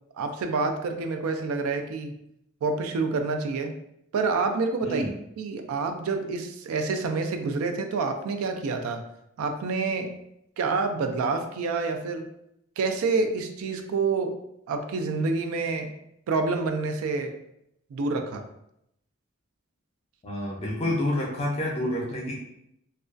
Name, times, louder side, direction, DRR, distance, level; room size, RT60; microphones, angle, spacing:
voice 1, 0.2-2.1 2.6-3.7 4.1-5.0 5.4-9.0 9.4-10.2 10.6-12.3 12.8-14.4 14.7-15.9 16.3-17.4 17.9-18.5, right 4 dB, 85° right, 6 dB, 0.3 m, -27 dB
voice 2, 20.2-22.4, left 1 dB, 30° left, -2 dB, 0.5 m, -28 dB
2.3 x 2.2 x 2.4 m, 0.79 s
head